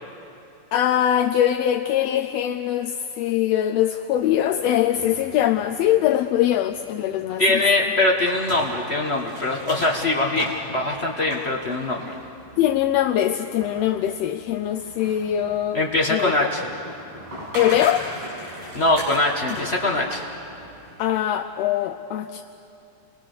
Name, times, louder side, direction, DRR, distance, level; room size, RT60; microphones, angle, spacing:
voice 1, 0.7-7.6 12.6-15.8 16.1-16.5 17.5-18.1 21.0-22.4, left 11 dB, 75° left, 3 dB, 1.6 m, -22 dB
sound 1, 4.1-21.0, equal, 40° right, 6.5 m, -40 dB
voice 2, 7.4-12.1 15.7-16.7 18.7-20.3, left 2 dB, 35° left, -1 dB, 1.0 m, -22 dB
29.0 x 21.0 x 6.6 m, 2.9 s
omnidirectional pair, 3.4 m